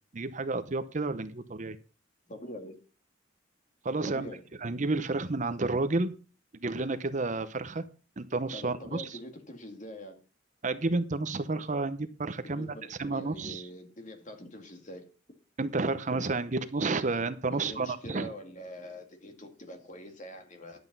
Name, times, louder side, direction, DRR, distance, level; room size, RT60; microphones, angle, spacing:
voice 1, 0.1-1.8 3.8-4.3 4.6-6.1 6.5-7.9 8.2-9.2 10.6-13.7 15.6-18.3, right 3 dB, 40° right, 12 dB, 0.7 m, -31 dB
voice 2, 2.3-2.8 4.0-4.4 8.5-10.2 12.4-15.1 17.5-20.8, equal, 40° left, 5 dB, 2.3 m, -44 dB
11.0 x 8.0 x 5.4 m, 0.36 s
head